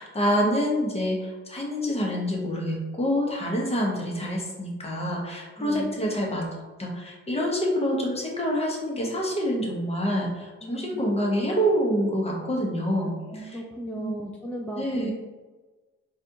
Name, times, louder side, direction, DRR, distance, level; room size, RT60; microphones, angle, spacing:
voice 1, 0.0-6.5 6.8-13.6 14.0-14.2 14.8-15.1, equal, 20° left, -2 dB, 0.9 m, -27 dB
voice 2, 5.6-6.0 10.6-11.0 12.9-15.1, right 1 dB, 5° left, -3 dB, 0.3 m, -36 dB
4.2 x 2.4 x 2.6 m, 1.2 s
cardioid pair, 90°, 30 cm